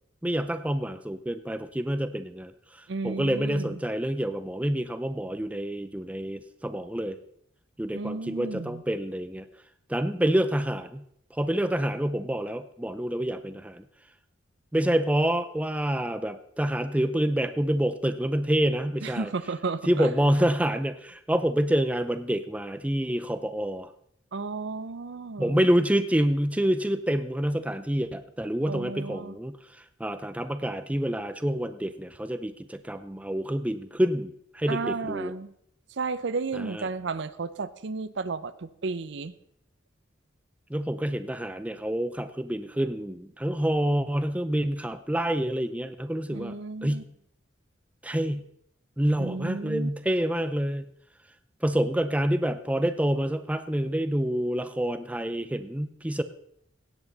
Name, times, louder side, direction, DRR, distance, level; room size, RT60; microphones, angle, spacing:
voice 1, 0.2-2.5 3.0-7.2 7.8-9.4 9.9-11.0 11.4-13.8 14.7-19.3 19.9-23.9 25.4-29.6 30.0-35.3 36.5-36.9 40.7-47.0 48.0-48.5 49.0-50.8 51.6-56.2, right 1 dB, 5° right, 10 dB, 0.5 m, -27 dB
voice 2, 2.9-3.8 7.9-8.8 19.0-20.1 24.3-25.6 28.7-29.4 34.7-35.5 36.0-39.3 46.3-47.0 49.2-49.9, right 4 dB, 65° right, 14 dB, 0.6 m, -33 dB
16.5 x 8.0 x 4.0 m, 0.72 s
head